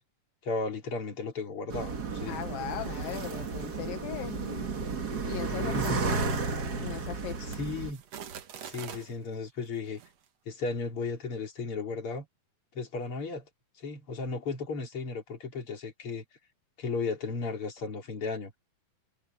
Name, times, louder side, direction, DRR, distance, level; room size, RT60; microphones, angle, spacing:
voice 1, 0.4-2.4 5.7-6.0 7.6-8.0 8.6-10.0 10.5-12.3 12.7-13.5 13.8-16.2 16.8-18.5, left 4 dB, 40° left, 4.3 m, -35 dB
sound 1, 1.7-7.9, right 4 dB, 35° right, 1.7 m, -33 dB
voice 2, 2.3-4.7 5.3-6.4 6.8-7.5, left 12 dB, 80° left, 2.9 m, -39 dB
sound 2, 6.8-9.2 9.9-10.1, right 8 dB, 55° right, 2.2 m, -45 dB
omnidirectional pair, 4.0 m